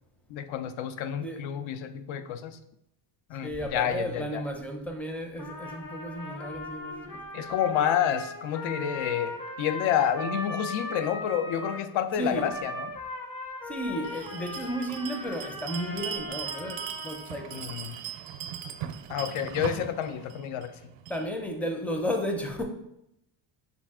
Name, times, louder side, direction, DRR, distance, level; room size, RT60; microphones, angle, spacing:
voice 1, 0.3-2.6 3.3-4.4 7.3-12.9 17.5-18.0 19.1-20.7, left 9 dB, 70° left, 0.6 m, -29 dB
voice 2, 3.4-7.2 12.2-12.5 13.7-17.6 21.1-22.6, equal, 5° left, 0.5 m, -33 dB
Trumpet, 5.4-11.9 12.3-17.7, left 2 dB, 45° left, 0.8 m, -39 dB
Bell, 14.0-21.3, right 9 dB, 70° right, 0.6 m, -39 dB
5.8 x 2.4 x 3.5 m
cardioid pair, 105°, 48 cm